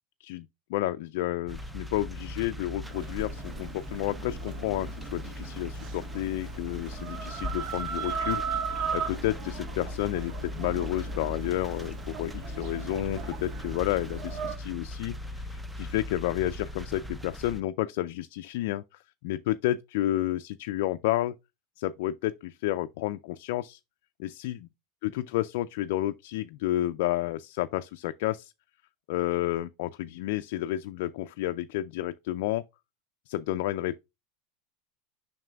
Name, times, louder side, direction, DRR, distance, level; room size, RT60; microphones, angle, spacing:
voice 1, 0.2-21.3 21.8-23.8 24.2-24.6 25.0-28.5 29.1-32.6 33.3-34.0, left 15 dB, 70° left, 0.4 m, -31 dB
sound 1, 1.5-17.6, left 1 dB, 5° right, 0.6 m, -39 dB
Chicken rooster, 2.8-14.6, right 7 dB, 55° right, 1.5 m, -38 dB
7.5 x 5.9 x 2.3 m
supercardioid pair, 120°, 0 cm